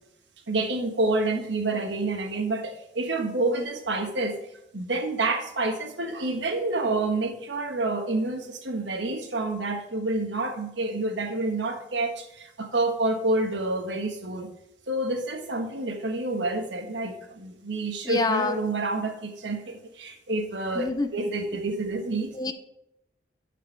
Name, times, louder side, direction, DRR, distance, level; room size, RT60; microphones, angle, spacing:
voice 1, 0.5-4.3 4.7-14.5 14.9-20.9 21.1-22.3, right 2 dB, 90° right, 4 dB, 1.4 m, -28 dB
voice 2, 18.0-18.6 20.8-21.1 22.3-22.5, left 3 dB, 20° left, 9 dB, 0.6 m, -26 dB
12.0 x 5.0 x 4.6 m, 0.84 s
head